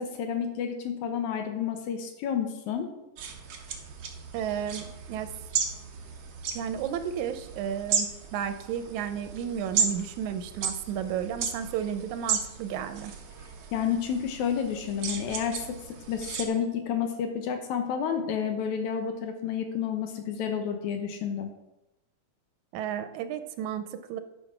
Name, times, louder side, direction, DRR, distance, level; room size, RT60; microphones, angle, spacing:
voice 1, 0.0-2.9 13.7-15.8 16.1-21.5, left 7 dB, 90° left, 5 dB, 2.3 m, -30 dB
sound 1, 3.2-16.4, right 6 dB, 60° right, 1.2 m, -35 dB
voice 2, 4.3-5.3 6.5-13.1 22.7-24.2, right 9 dB, 90° right, 10 dB, 2.2 m, -33 dB
10.5 x 4.9 x 5.9 m, 0.94 s
omnidirectional pair, 3.3 m